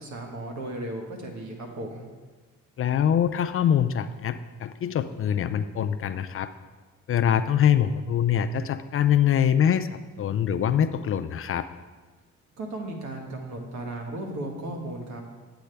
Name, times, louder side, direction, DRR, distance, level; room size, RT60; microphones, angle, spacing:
voice 1, 0.0-2.1 12.6-15.2, right 1 dB, 65° right, 1 dB, 1.7 m, -35 dB
voice 2, 2.8-6.5 7.1-11.7, left 9 dB, 45° left, 11 dB, 0.4 m, -24 dB
8.5 x 8.1 x 3.4 m, 1.3 s
cardioid pair, 90°, 30 cm